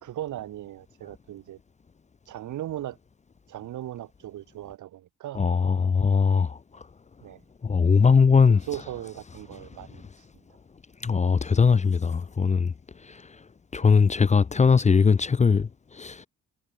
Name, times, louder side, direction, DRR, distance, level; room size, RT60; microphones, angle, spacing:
voice 1, 0.0-1.6 2.3-3.0 3.5-5.4 7.2-7.4 8.5-10.1, right 13 dB, 75° right, 3.5 m, -37 dB
voice 2, 5.3-6.8 7.6-8.6 11.0-12.7 13.0-13.4 13.7-16.3, left 5 dB, 25° left, 0.6 m, -21 dB
cardioid pair, 90°, 30 cm